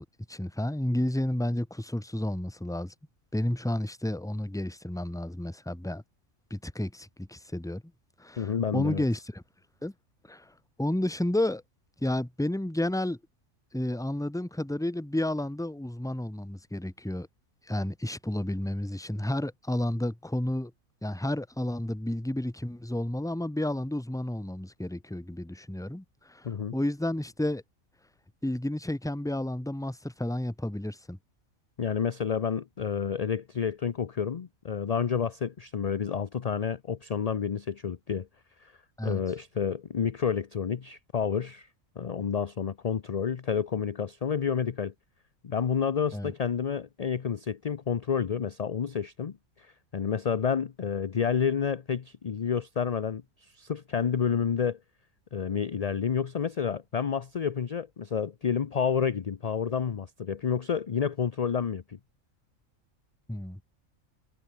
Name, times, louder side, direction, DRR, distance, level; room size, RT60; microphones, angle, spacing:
voice 1, 0.0-2.9 3.3-6.0 6.5-7.8 8.2-9.4 9.8-9.9 10.3-10.5 10.8-11.6 12.0-13.2 13.7-17.3 17.7-20.7 21.0-27.6 28.4-31.2 39.0-39.2 46.1-46.3 63.3-63.6, left 1 dB, 5° left, 1.1 m, -31 dB
voice 2, 8.4-9.0 26.4-26.8 31.8-38.3 38.6-38.7 39.0-41.7 42.0-44.9 45.4-49.7 49.9-54.8 55.3-62.0, left 7 dB, 40° left, 0.6 m, -29 dB
omnidirectional pair, 1.4 m